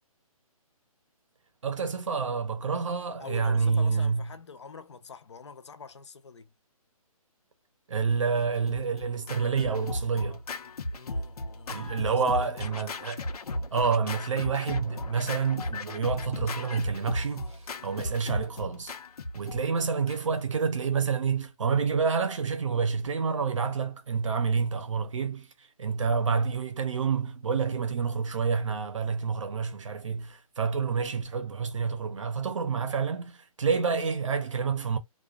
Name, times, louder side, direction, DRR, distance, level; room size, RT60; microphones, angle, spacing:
voice 1, 1.6-4.3 7.9-10.4 11.7-13.2 13.7-17.6 17.8-18.9 19.3-25.5 25.8-35.0, right 5 dB, 55° right, 0.6 m, -28 dB
voice 2, 3.2-6.5 10.9-12.8 19.5-19.7 33.8-33.9, left 5 dB, 50° left, 0.5 m, -46 dB
Scratching (performance technique), 8.4-20.5, left 2 dB, 90° left, 0.8 m, -36 dB
2.4 x 2.3 x 2.3 m
hypercardioid pair, 180°, 19 cm